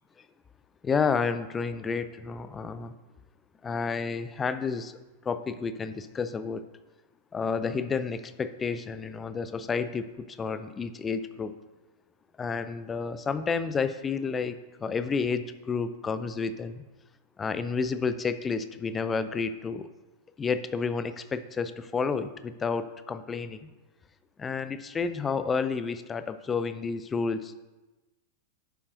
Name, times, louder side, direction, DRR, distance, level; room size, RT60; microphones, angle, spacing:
voice 1, 0.8-2.9 3.6-5.0 5.2-6.6 7.3-11.5 12.4-16.8 17.4-19.9 20.4-23.7 24.4-27.6, left 5 dB, 20° left, 12 dB, 0.5 m, -30 dB
11.0 x 8.6 x 2.7 m, 1.1 s
figure-of-eight pair, 90°, 0 cm